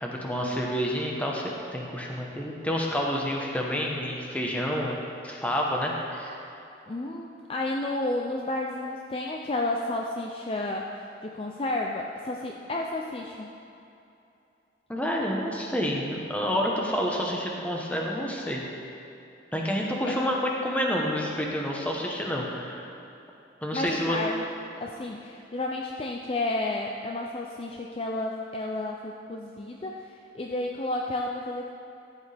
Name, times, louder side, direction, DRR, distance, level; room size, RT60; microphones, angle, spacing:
voice 1, 0.0-6.4 14.9-18.7 19.5-22.9 23.6-24.2, equal, 10° left, -2 dB, 1.0 m, -29 dB
voice 2, 6.9-13.5 20.1-20.3 23.7-24.4 24.8-31.7, left 2 dB, 30° left, 0 dB, 0.4 m, -31 dB
13.5 x 8.1 x 3.4 m, 2.8 s
head